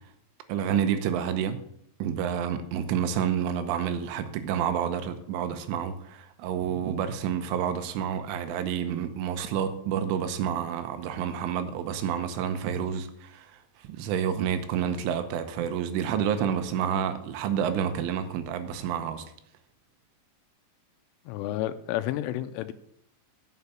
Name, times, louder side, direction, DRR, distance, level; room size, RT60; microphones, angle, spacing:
voice 1, 0.5-1.6 2.0-13.5 13.9-19.3, right 8 dB, 80° right, 3.3 m, -29 dB
voice 2, 21.3-22.7, left 13 dB, 85° left, 3.1 m, -31 dB
9.7 x 6.5 x 7.0 m
omnidirectional pair, 5.8 m